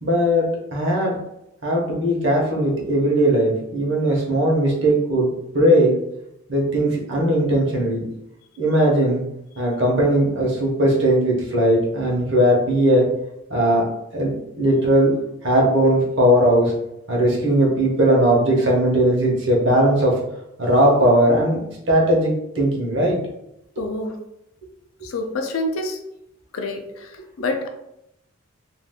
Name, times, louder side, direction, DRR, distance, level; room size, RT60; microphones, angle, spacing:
voice 1, 0.0-1.2 1.6-5.9 6.5-8.0 8.6-9.2 9.6-13.1 13.5-13.9 14.1-15.2 15.4-16.7 17.1-20.2 20.6-21.6 21.9-23.2 23.8-23.9, right 1 dB, 55° right, -2 dB, 0.9 m, -18 dB
voice 2, 23.8-24.2 25.0-26.0 26.5-27.7, left 2 dB, 75° left, 4 dB, 0.5 m, -27 dB
2.5 x 2.3 x 3.5 m, 0.82 s
head